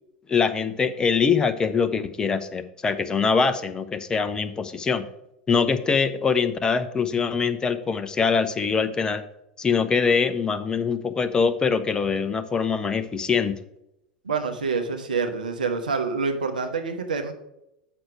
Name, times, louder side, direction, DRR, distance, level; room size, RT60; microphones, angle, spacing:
voice 1, 0.3-5.0 5.5-9.2 9.6-13.6, left 5 dB, 15° left, 9 dB, 0.6 m, -23 dB
voice 2, 14.2-17.3, right 4 dB, 75° right, 5 dB, 1.1 m, -27 dB
7.9 x 6.1 x 4.7 m, 0.83 s
figure-of-eight pair, 85°, 5 cm